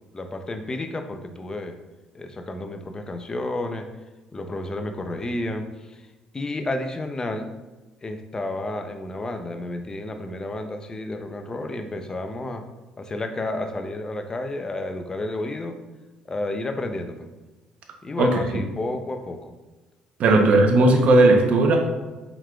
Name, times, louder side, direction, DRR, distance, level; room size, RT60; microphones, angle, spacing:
voice 1, 0.1-1.8 2.1-3.9 4.3-6.1 6.3-7.5 8.0-12.6 13.0-15.8 16.3-17.2 18.0-19.5 20.3-20.5, left 2 dB, 25° left, 6 dB, 0.5 m, -31 dB
voice 2, 20.2-21.8, right 2 dB, 60° right, 3 dB, 0.8 m, -16 dB
4.5 x 3.9 x 2.3 m, 1.2 s
hypercardioid pair, 65°, 3 cm